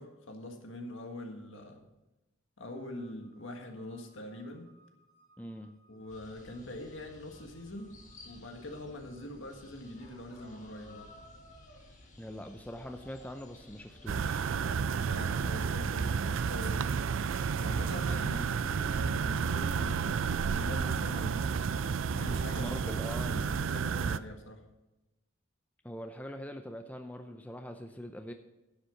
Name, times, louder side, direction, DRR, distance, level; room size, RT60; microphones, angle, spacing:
voice 1, 0.0-1.8 2.6-4.7 5.9-8.0 8.2-11.1 15.0-17.1 17.6-21.5 22.1-22.7 23.1-24.6, left 1 dB, 70° left, 4 dB, 1.7 m, -44 dB
sound 1, 2.6-10.9, right 2 dB, 55° right, 4.5 m, -66 dB
voice 2, 5.4-5.7 12.2-14.5 22.6-23.4 25.8-28.3, equal, 5° left, 6 dB, 0.5 m, -43 dB
sound 2, 6.1-14.5, left 1 dB, 35° left, 1.8 m, -55 dB
sound 3, 14.1-24.2, right 6 dB, 75° right, 0.4 m, -31 dB
10.0 x 8.2 x 5.9 m, 0.98 s
head